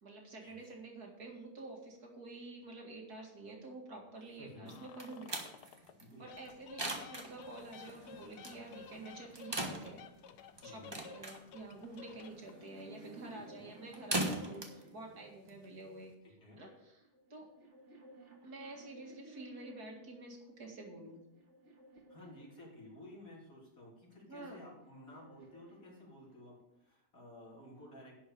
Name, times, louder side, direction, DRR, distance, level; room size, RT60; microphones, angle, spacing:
voice 1, 0.0-5.7 6.2-10.0 10.6-16.1 16.6-17.0 17.3-17.5 18.4-21.2 24.3-24.7, right 2 dB, 65° right, 1 dB, 2.6 m, -49 dB
voice 2, 4.4-4.8 6.0-6.2 10.5-11.0 13.3-13.7 16.2-16.6 22.1-28.1, left 1 dB, 55° left, -4 dB, 3.9 m, -54 dB
sound 1, 4.7-6.0 6.3-12.7, left 8 dB, 75° left, 1.3 m, -54 dB
sound 2, 4.7-16.1, right 1 dB, 15° right, 1.3 m, -42 dB
sound 3, 12.4-15.8 16.7-20.1 20.8-23.2 24.2-26.6, right 2 dB, 45° right, 2.0 m, -58 dB
11.0 x 5.5 x 8.5 m, 0.86 s
omnidirectional pair, 1.8 m